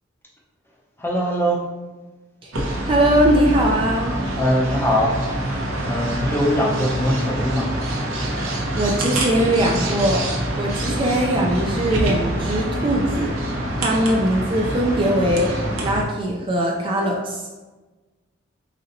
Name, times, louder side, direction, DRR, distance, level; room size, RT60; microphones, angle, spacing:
voice 1, 1.0-1.6 4.3-5.1 5.9-7.7, equal, 10° left, -2 dB, 0.7 m, -21 dB
sound 1, 2.5-16.0, right 1 dB, 75° right, 0.8 m, -25 dB
voice 2, 2.9-4.2 8.7-10.3 10.6-13.3 13.8-15.6 15.8-17.4, right 1 dB, 25° right, -1 dB, 0.4 m, -20 dB
4.2 x 4.0 x 2.6 m, 1.2 s
head